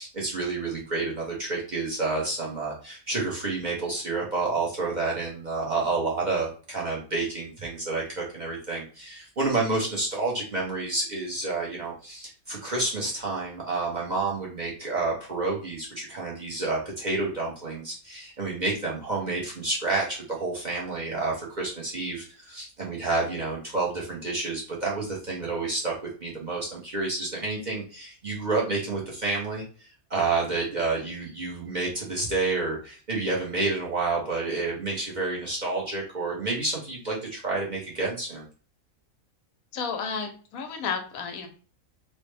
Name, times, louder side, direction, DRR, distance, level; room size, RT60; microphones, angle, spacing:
voice 1, 0.0-25.9 26.2-38.4, right 3 dB, 40° right, -4 dB, 0.7 m, -29 dB
voice 2, 39.7-41.5, left 6 dB, 85° left, 5 dB, 1.1 m, -32 dB
3.1 x 2.0 x 3.1 m, 0.38 s
omnidirectional pair, 1.4 m